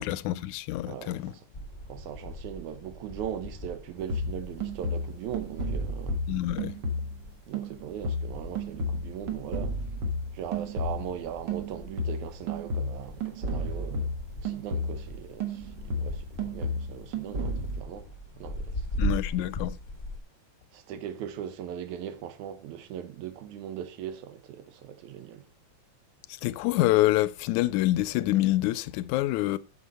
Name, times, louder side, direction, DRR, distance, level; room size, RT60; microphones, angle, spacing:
voice 1, 0.0-1.3 6.3-6.8 19.0-19.8 26.4-29.6, left 16 dB, 85° left, 2.0 m, -26 dB
voice 2, 0.9-1.4 1.9-6.2 7.5-9.8 10.3-18.1 18.4-18.8 20.7-25.4, right 9 dB, 80° right, 2.3 m, -39 dB
sound 1, 1.5-20.2, equal, 25° left, 1.1 m, -40 dB
sound 2, 4.1-7.3 7.5-11.2 11.5-15.2 15.4-17.8, equal, 45° right, 1.8 m, -32 dB
9.2 x 6.7 x 4.1 m
omnidirectional pair, 3.4 m